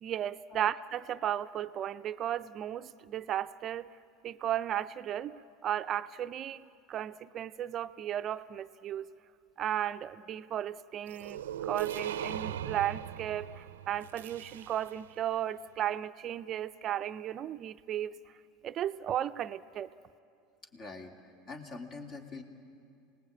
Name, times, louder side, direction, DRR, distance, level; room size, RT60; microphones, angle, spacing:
voice 1, 0.0-3.9 4.2-9.1 9.6-18.1 18.6-19.9, right 11 dB, 45° right, 11 dB, 0.5 m, -35 dB
sound 1, 11.1-15.1, right 10 dB, 90° right, 0.6 m, -39 dB
voice 2, 20.7-21.1 21.5-22.4, left 3 dB, 40° left, 3 dB, 3.0 m, -44 dB
27.0 x 19.0 x 8.7 m, 2.4 s
hypercardioid pair, 95°, 0 cm